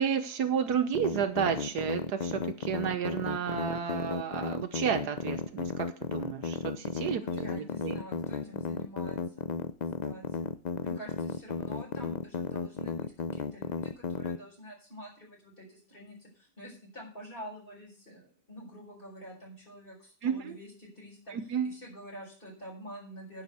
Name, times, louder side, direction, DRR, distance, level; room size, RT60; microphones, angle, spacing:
voice 1, 0.0-8.0 20.2-20.6 21.3-21.7, right 7 dB, 80° right, 9 dB, 1.6 m, -32 dB
sound 1, 0.9-14.4, left 5 dB, 90° left, 0.3 m, -34 dB
voice 2, 7.0-9.5 10.0-10.5 10.8-21.3 21.6-23.4, equal, 30° left, -2 dB, 5.6 m, -47 dB
10.5 x 6.0 x 8.2 m, 0.40 s
omnidirectional pair, 1.7 m